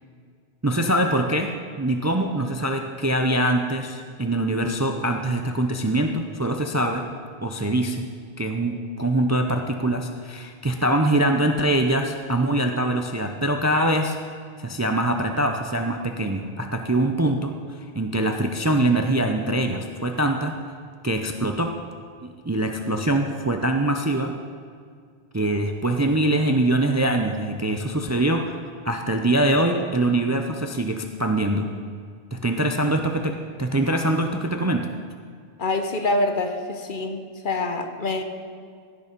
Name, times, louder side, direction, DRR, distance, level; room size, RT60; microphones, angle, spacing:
voice 1, 0.6-7.1 7.4-8.1 8.4-14.2 14.6-17.5 17.9-20.5 21.0-21.7 22.4-24.3 25.3-28.6 28.8-31.7 32.3-34.9, right 1 dB, 20° right, 5 dB, 0.5 m, -23 dB
voice 2, 35.6-38.2, left 2 dB, 55° left, 6 dB, 1.1 m, -26 dB
16.0 x 6.8 x 5.3 m, 2.1 s
omnidirectional pair, 1.1 m